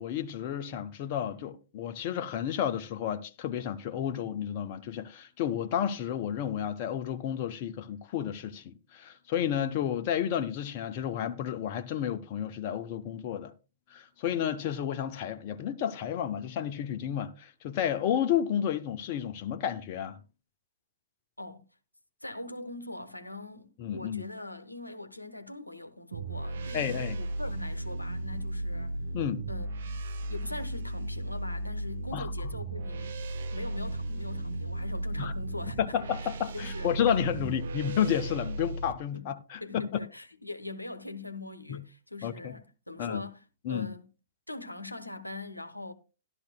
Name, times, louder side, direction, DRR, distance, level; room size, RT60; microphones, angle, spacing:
voice 1, 0.0-13.5 13.9-20.2 23.8-24.2 26.7-27.2 29.1-29.5 32.1-32.3 35.2-35.3 35.8-39.8 41.7-41.8 42.2-42.5 43.0-43.2 43.6-43.9, left 9 dB, 40° left, 0.7 m, -31 dB
voice 2, 22.2-29.0 29.5-29.7 30.3-33.2 33.5-36.0 36.5-36.9 37.3-37.5 39.1-39.3 39.6-43.4 43.7-44.1 44.5-45.9, left 2 dB, 90° left, 1.0 m, -42 dB
sound 1, 26.1-38.9, right 2 dB, 60° right, 0.9 m, -35 dB
13.5 x 11.5 x 2.2 m
figure-of-eight pair, 110°, 0 cm